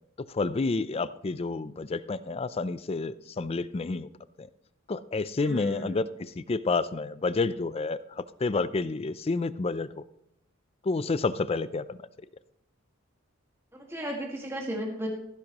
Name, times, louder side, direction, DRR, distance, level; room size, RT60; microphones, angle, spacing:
voice 1, 0.2-4.1 4.4-4.5 4.9-10.0 10.8-12.0, left 3 dB, 30° left, 15 dB, 0.4 m, -29 dB
voice 2, 5.4-5.9 13.7-15.1, equal, 15° right, -1 dB, 1.9 m, -34 dB
15.0 x 9.9 x 3.0 m, 0.80 s
head